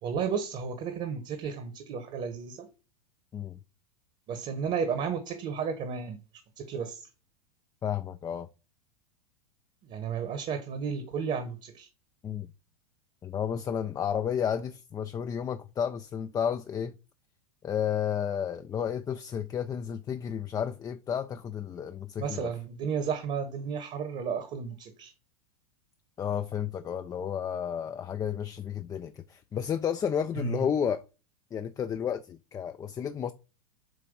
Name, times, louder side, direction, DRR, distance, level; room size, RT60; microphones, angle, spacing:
voice 1, 0.0-2.7 4.3-6.2 6.6-7.1 9.8-11.9 22.2-25.1 30.4-30.7, right 6 dB, 40° right, 1.3 m, -33 dB
voice 2, 7.8-8.5 12.2-12.5 13.2-16.9 17.6-22.5 26.2-31.0 31.5-33.3, left 8 dB, 20° left, 0.4 m, -32 dB
7.8 x 2.6 x 5.4 m
hypercardioid pair, 95°, 19 cm